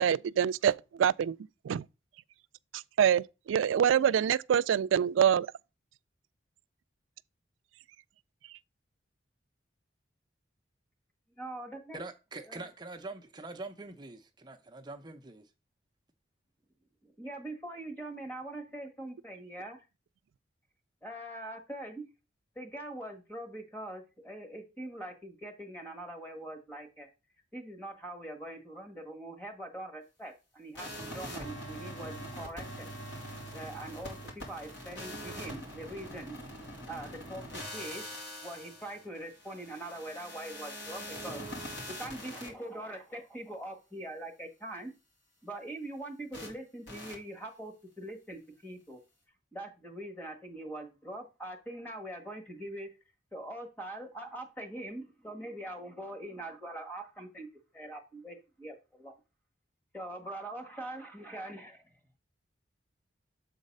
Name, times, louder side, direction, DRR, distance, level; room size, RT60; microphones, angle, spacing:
voice 1, 0.0-1.4 1.6-1.8 2.7-5.5, right 9 dB, 85° right, 0.3 m, -26 dB
voice 2, 11.4-12.0 12.5-12.6 17.2-19.8 21.0-22.1 22.5-27.1 27.5-36.3 36.9-38.0 38.4-41.4 42.0-44.9 45.4-49.0 49.5-52.9 53.3-57.5 57.7-59.1 59.9-61.8, right 1 dB, 10° left, 1.5 m, -43 dB
voice 3, 11.9-15.5, right 2 dB, 20° right, 0.6 m, -44 dB
sound 1, 30.7-42.5 46.3-46.5 46.9-47.1, equal, 75° left, 3.1 m, -43 dB
7.3 x 4.0 x 5.3 m
head